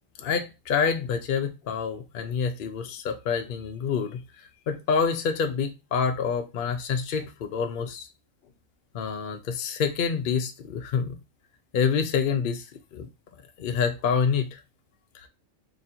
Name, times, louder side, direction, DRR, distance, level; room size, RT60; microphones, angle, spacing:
voice 1, 0.2-4.2 4.7-8.1 8.9-11.1 11.7-12.6 12.9-13.1 13.6-14.6 15.1-15.3, left 6 dB, 55° left, 0.6 m, -27 dB
3.0 x 2.5 x 4.2 m
omnidirectional pair, 1.4 m